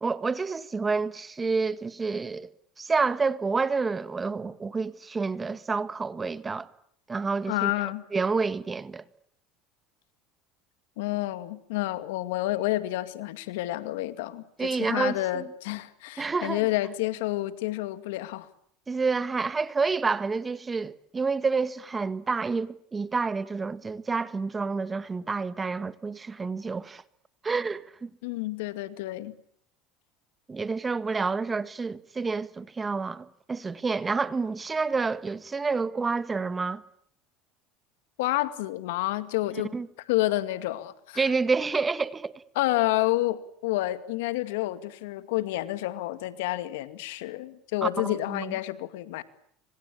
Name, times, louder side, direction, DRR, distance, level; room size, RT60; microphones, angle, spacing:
voice 1, 0.0-2.5 2.8-6.7 7.1-7.7 8.1-9.0 14.6-15.5 16.2-16.7 18.9-27.0 27.4-28.1 30.5-36.8 39.7-39.9 41.2-42.4 47.8-48.5, right 4 dB, 20° right, 1.6 m, -29 dB
voice 2, 7.5-8.0 11.0-14.4 14.7-18.5 28.2-29.4 38.2-39.7 40.1-41.2 42.6-49.2, left 17 dB, 80° left, 2.2 m, -29 dB
26.0 x 26.0 x 8.7 m
supercardioid pair, 95°, 0 cm